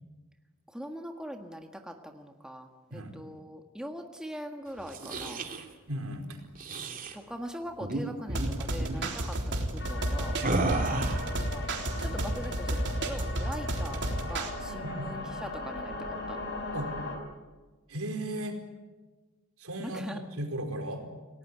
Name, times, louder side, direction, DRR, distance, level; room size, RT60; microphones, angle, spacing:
voice 1, 0.7-5.4 7.1-10.4 11.4-11.7 12.0-16.4 19.8-20.2, equal, 5° right, 4 dB, 1.6 m, -42 dB
sound 1, 4.8-5.6 6.5-7.1 7.8-8.0 8.3-8.5 8.8-9.1 10.4-11.3, right 2 dB, 40° right, 2.7 m, -32 dB
voice 2, 5.9-6.4 10.6-10.8 14.8-15.1 16.7-16.9 17.9-18.6 19.6-21.1, right 1 dB, 70° right, 4 dB, 4.7 m, -36 dB
sound 2, 8.3-14.5, right 1 dB, 55° right, 3.7 m, -32 dB
sound 3, 9.8-17.2, left 2 dB, 55° left, 5.6 m, -38 dB
29.0 x 18.5 x 9.4 m, 1.3 s
head